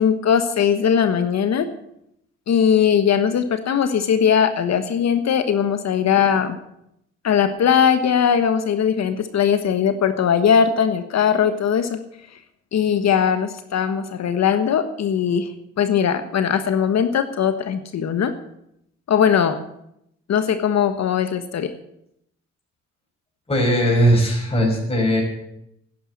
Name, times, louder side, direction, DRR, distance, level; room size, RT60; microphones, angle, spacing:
voice 1, 0.0-1.7 2.5-6.6 7.2-12.0 12.7-15.5 15.8-18.3 19.1-19.6 20.3-21.7, left 8 dB, 60° left, 9 dB, 1.4 m, -19 dB
voice 2, 23.5-25.2, equal, 20° left, -2 dB, 5.6 m, -18 dB
11.5 x 10.5 x 8.7 m, 0.77 s
cardioid pair, 90°, 30 cm